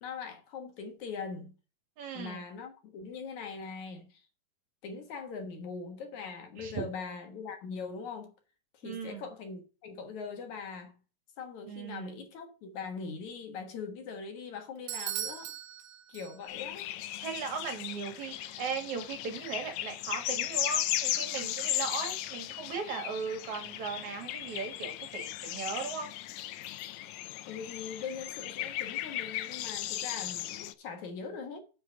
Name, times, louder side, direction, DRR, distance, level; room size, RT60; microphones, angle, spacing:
voice 1, 0.0-1.6 2.1-4.3 4.8-8.3 8.7-11.0 11.4-15.5 16.1-16.9 27.5-31.6, left 5 dB, 65° left, 2.6 m, -41 dB
voice 2, 2.0-2.4 6.6-6.8 8.8-9.3 11.6-12.2 17.2-26.1, right 5 dB, 60° right, 3.3 m, -38 dB
Bell / Doorbell, 14.9-16.7, right 13 dB, 80° right, 2.4 m, -39 dB
sound 1, 16.5-30.7, left 14 dB, 90° left, 1.6 m, -36 dB
7.7 x 6.8 x 5.7 m
omnidirectional pair, 3.9 m